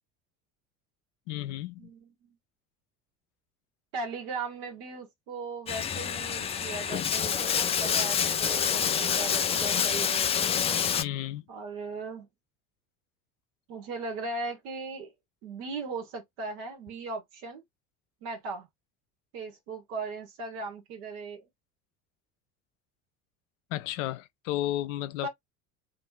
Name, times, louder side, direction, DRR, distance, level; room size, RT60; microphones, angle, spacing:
voice 1, 1.3-1.8 11.0-11.4 23.7-25.3, left 14 dB, 60° left, 0.6 m, -33 dB
voice 2, 1.8-2.3 3.9-10.4 11.5-12.3 13.7-15.1 15.4-17.6 18.2-18.7 19.3-21.5 25.2-25.3, right 3 dB, 65° right, 1.4 m, -38 dB
Bathtub (filling or washing), 5.7-11.0, left 7 dB, 15° left, 0.3 m, -27 dB
2.6 x 2.6 x 4.1 m
figure-of-eight pair, 60°, 42 cm